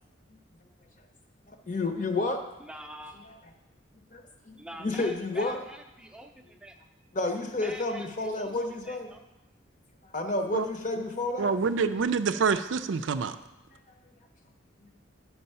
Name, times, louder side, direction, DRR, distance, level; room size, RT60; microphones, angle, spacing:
voice 1, 1.5-2.4 4.1-5.6 7.1-9.1 10.0-11.5, left 2 dB, 40° left, 5 dB, 0.8 m, -30 dB
voice 2, 2.6-3.4 4.6-6.8 7.6-9.2, right 1 dB, 5° right, 4 dB, 0.5 m, -45 dB
voice 3, 11.4-13.4, right 5 dB, 70° right, 10 dB, 0.4 m, -26 dB
10.5 x 4.7 x 5.5 m, 1.0 s
head